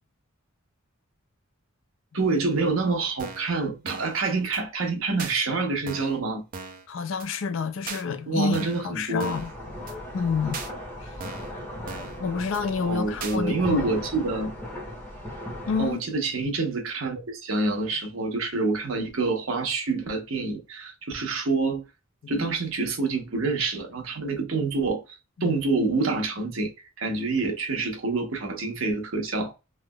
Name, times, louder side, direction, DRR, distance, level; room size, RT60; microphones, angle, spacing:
voice 1, 2.1-6.5 8.3-9.3 12.8-14.5 15.8-21.8 22.3-26.7 27.0-29.5, right 3 dB, 75° right, 0.9 m, -27 dB
sound 1, 3.2-3.5 3.9-4.2 4.5-4.6 5.2-5.4 5.9-6.2 6.5-6.9 7.2-7.3 7.9-8.0 8.5-8.9 9.2-9.5 9.9-10.0 10.5-10.7 11.2-11.5 11.9-12.2 12.5-12.6 13.2-13.4, right 5 dB, 45° right, 0.5 m, -38 dB
voice 2, 6.9-9.5 10.1-10.6 12.2-13.9 15.7-16.0 22.2-22.4 25.4-25.6, left 5 dB, 65° left, 0.4 m, -28 dB
sound 2, 9.3-15.9, left 1 dB, 10° left, 1.5 m, -37 dB
3.3 x 2.9 x 2.2 m
head